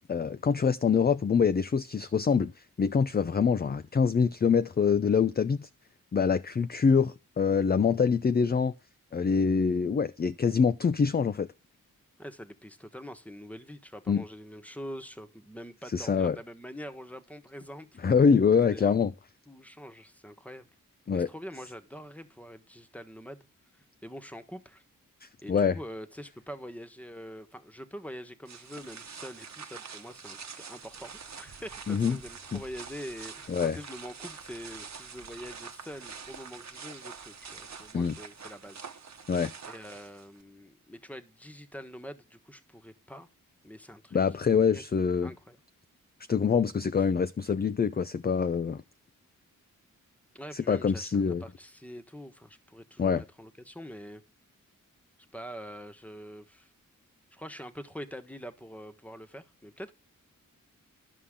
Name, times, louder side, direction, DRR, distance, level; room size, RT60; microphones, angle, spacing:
voice 1, 0.1-2.5 2.8-5.7 6.1-8.7 9.1-11.5 14.1-14.2 15.9-16.4 18.0-19.1 21.1-21.3 25.2-25.8 31.9-32.2 32.5-32.6 33.5-33.8 37.9-38.1 39.3-39.5 44.1-45.3 46.3-48.8 50.5-51.4 53.0-53.2, left 6 dB, 30° left, 0.5 m, -25 dB
voice 2, 12.2-18.0 18.7-18.9 19.5-20.7 21.1-23.5 23.7-24.8 25.4-38.9 39.6-43.3 43.6-44.2 44.7-44.8 45.2-45.6 50.3-54.2 55.3-56.7 57.3-59.9, equal, 5° left, 1.2 m, -44 dB
sound 1, 28.5-40.4, right 6 dB, 55° right, 1.1 m, -45 dB
11.5 x 5.6 x 3.7 m
cardioid pair, 50°, 34 cm